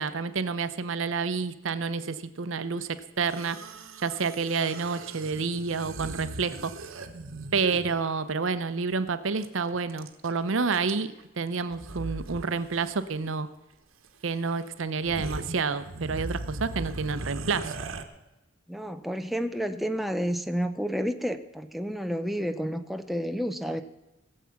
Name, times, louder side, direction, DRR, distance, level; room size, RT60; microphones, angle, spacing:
voice 1, 0.0-3.6 4.0-6.7 7.5-13.5 14.2-17.7, right 4 dB, 70° right, 13 dB, 0.7 m, -29 dB
sound 1, 3.2-8.0 9.4-9.5 9.7-10.3 10.7-11.2 11.7-12.5 12.7-12.9 14.0-14.1 14.6-14.7 15.0-18.0, right 2 dB, 85° right, 1.2 m, -38 dB
voice 2, 18.7-23.8, equal, ahead, 7 dB, 0.5 m, -30 dB
19.5 x 7.5 x 5.8 m, 0.99 s
head